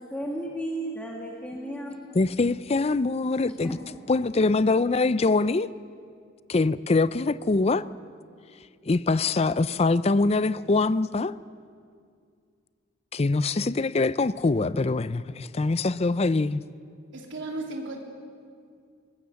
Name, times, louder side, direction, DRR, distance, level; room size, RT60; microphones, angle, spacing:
voice 1, 0.0-2.0 3.5-4.0, right 1 dB, 5° left, 1.9 m, -34 dB
voice 2, 2.1-3.8 4.1-5.7 6.5-7.8 8.9-11.3 13.1-16.6, left 3 dB, 35° left, 0.5 m, -23 dB
voice 3, 17.1-18.0, right 2 dB, 75° right, 3.0 m, -35 dB
22.5 x 20.0 x 7.1 m
head